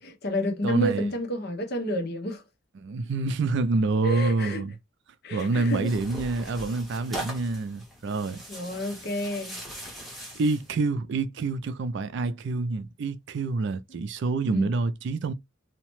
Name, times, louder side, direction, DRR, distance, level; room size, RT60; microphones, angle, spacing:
voice 1, 0.0-2.4 4.0-4.6 5.2-5.9 8.5-9.6 13.9-14.0 14.5-14.7, equal, 55° left, 0.8 m, -30 dB
voice 2, 0.6-1.0 2.8-4.7 5.3-8.4 10.3-15.3, right 3 dB, 65° right, 0.4 m, -27 dB
Tearing, 5.4-10.7, right 1 dB, ahead, 0.8 m, -40 dB
2.8 x 2.1 x 3.0 m
head